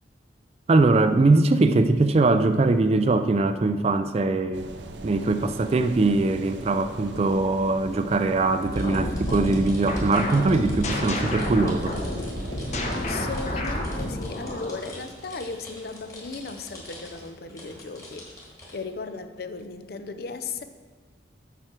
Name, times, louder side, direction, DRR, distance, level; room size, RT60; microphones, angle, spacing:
voice 1, 0.7-4.7 5.0-12.0, right 3 dB, 35° right, 10 dB, 0.3 m, -21 dB
sound 1, 4.5-13.6, right 2 dB, 75° right, 0.6 m, -40 dB
sound 2, 8.7-14.9, left 1 dB, 40° left, 0.9 m, -30 dB
sound 3, 8.7-18.8, left 1 dB, 20° left, 1.6 m, -45 dB
voice 2, 12.9-18.3 18.7-20.6, left 4 dB, 55° left, 10 dB, 0.5 m, -36 dB
7.6 x 6.1 x 4.4 m, 1.5 s
head